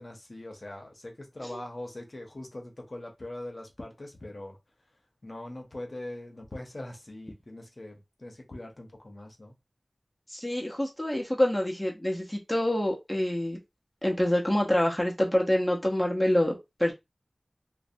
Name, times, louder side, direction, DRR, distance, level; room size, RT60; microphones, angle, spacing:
voice 1, 0.0-4.6 5.2-9.6, left 1 dB, 50° left, 0.7 m, -42 dB
voice 2, 10.3-13.6 14.0-16.9, left 1 dB, 5° left, 0.6 m, -26 dB
2.6 x 2.1 x 2.5 m
wide cardioid pair, 60°, 0 cm